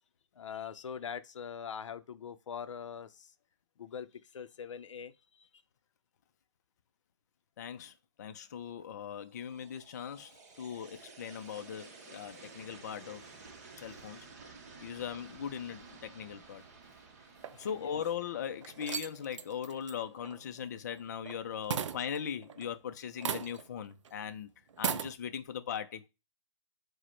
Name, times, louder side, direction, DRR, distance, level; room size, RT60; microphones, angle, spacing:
voice 1, 0.3-3.3 3.8-5.5 17.5-18.0, left 7 dB, 90° left, 0.5 m, -43 dB
voice 2, 7.6-13.4 13.8-14.3 14.8-16.6 17.6-24.5 24.8-26.0, left 8 dB, 35° left, 0.4 m, -39 dB
sound 1, 9.3-20.3, right 4 dB, 35° right, 0.8 m, -54 dB
sound 2, 17.4-18.1 18.6-21.4 21.7-22.7 23.2-23.8 24.0-24.1 24.7-25.1, right 7 dB, 85° right, 0.5 m, -37 dB
4.8 x 2.1 x 4.4 m
hypercardioid pair, 170°, 15 cm